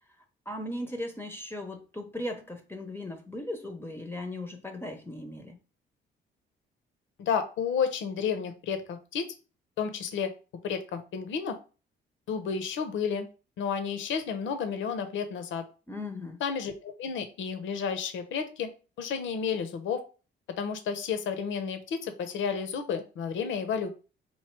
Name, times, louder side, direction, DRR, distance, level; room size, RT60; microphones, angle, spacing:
voice 1, 0.5-5.6 15.9-16.4, left 1 dB, 10° left, 0.6 m, -37 dB
voice 2, 7.2-9.2 9.8-10.3 10.6-11.5 12.3-13.3 13.6-15.6 16.4-18.7 19.0-20.0 20.6-23.9, left 6 dB, 75° left, 0.7 m, -31 dB
3.1 x 2.7 x 4.4 m
cardioid pair, 90°, 20 cm